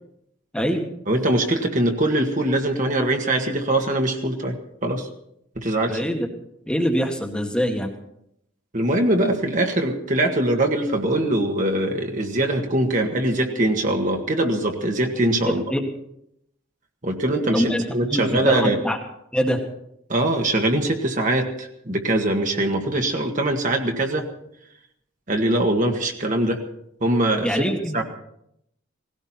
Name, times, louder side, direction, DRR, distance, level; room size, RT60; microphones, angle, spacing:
voice 1, 0.5-0.9 5.9-6.3 6.7-7.9 15.5-15.8 17.5-17.8 18.1-19.0 19.3-19.6 27.4-28.0, equal, 5° left, 2 dB, 1.7 m, -23 dB
voice 2, 1.1-4.6 4.8-5.1 5.6-6.0 8.7-15.6 17.0-18.8 20.1-24.3 25.3-26.6 27.0-27.6 27.9-28.0, right 1 dB, 40° right, 3 dB, 1.8 m, -22 dB
18.5 x 17.0 x 4.4 m, 0.76 s
head